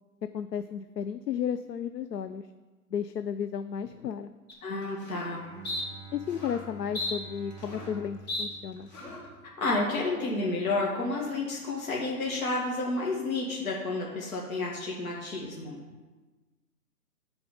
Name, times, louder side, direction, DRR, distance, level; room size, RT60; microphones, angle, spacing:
voice 1, 0.3-2.4 2.9-4.3 6.1-8.9, left 8 dB, 85° left, 11 dB, 0.6 m, -33 dB
sound 1, 4.5-4.6 5.0-5.3 5.6-5.8 6.3-6.6 6.9-8.0 8.3-8.4 8.9-9.3, left 2 dB, 25° left, 2.0 m, -35 dB
voice 2, 4.6-5.4 9.6-15.8, left 2 dB, 60° left, -4 dB, 2.1 m, -30 dB
Bowed string instrument, 5.3-10.6, right 5 dB, 30° right, 2.0 m, -49 dB
13.5 x 4.8 x 5.2 m, 1.3 s
hypercardioid pair, 155°, 48 cm